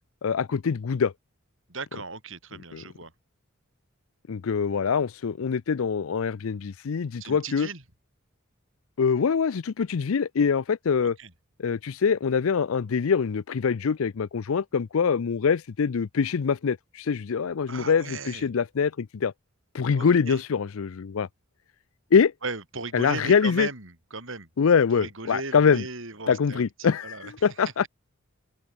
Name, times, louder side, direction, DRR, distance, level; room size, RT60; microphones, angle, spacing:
voice 1, 0.2-1.1 2.7-2.8 4.3-7.7 9.0-11.2 11.6-19.3 19.7-21.3 22.1-22.3 22.9-23.7 24.6-25.8 26.3-27.9, left 6 dB, 70° left, 0.5 m, -24 dB
voice 2, 1.7-3.1 7.2-7.8 11.0-11.3 17.7-18.4 19.9-20.4 22.4-24.5 24.9-27.5, right 3 dB, 60° right, 5.1 m, -37 dB
open air
head